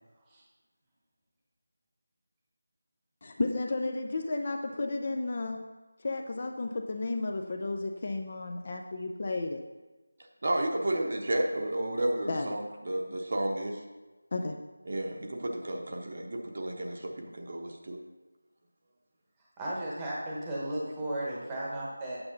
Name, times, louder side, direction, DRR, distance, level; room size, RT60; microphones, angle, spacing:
voice 1, 3.2-5.6 6.0-9.6 12.3-12.6 14.3-14.6, left 2 dB, 30° left, 4 dB, 0.5 m, -33 dB
voice 2, 10.4-13.8 14.9-18.0, right 1 dB, 35° right, 2 dB, 0.9 m, -32 dB
voice 3, 19.6-22.2, right 1 dB, 10° right, -5 dB, 1.0 m, -35 dB
8.7 x 7.1 x 3.9 m, 1.2 s
figure-of-eight pair, 175°, 0 cm